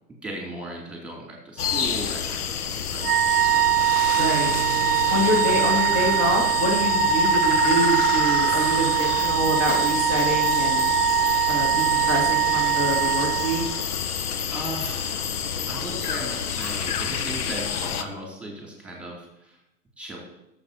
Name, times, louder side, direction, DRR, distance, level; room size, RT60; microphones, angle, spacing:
voice 1, 0.2-3.6 5.0-5.3 14.5-15.3 15.7-19.6 20.0-20.2, right 1 dB, ahead, -2 dB, 2.7 m, -37 dB
sound 1, 1.6-18.0, left 7 dB, 70° left, 0.8 m, -28 dB
Wind instrument woodwind instrument, 3.0-13.8, right 12 dB, 75° right, 0.6 m, -22 dB
voice 2, 4.1-4.5 5.1-10.8 11.5-13.6, equal, 30° left, -2 dB, 2.3 m, -26 dB
sound 2, 4.2-8.3, right 3 dB, 90° left, 2.5 m, -38 dB
18.0 x 7.4 x 2.9 m, 0.87 s
figure-of-eight pair, 100°, 48 cm